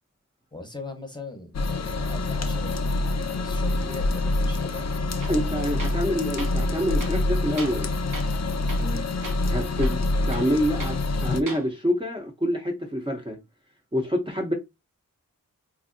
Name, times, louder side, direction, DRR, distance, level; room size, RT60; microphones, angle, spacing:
voice 1, 0.5-4.9 8.8-9.1, left 3 dB, 15° left, 0.9 m, -39 dB
sound 1, 1.5-11.4, left 2 dB, 50° left, 0.5 m, -26 dB
Tools, 5.2-5.4 5.8-6.1 6.4-6.6 7.0-7.9 8.1-8.4 8.7-9.0 9.2-9.4 9.8-11.0 11.4-11.7, right 3 dB, 70° right, 0.9 m, -39 dB
voice 2, 5.3-7.9 9.5-13.4 13.9-14.5, equal, 15° right, 0.7 m, -27 dB
3.2 x 2.6 x 2.5 m
wide cardioid pair, 55°, 34 cm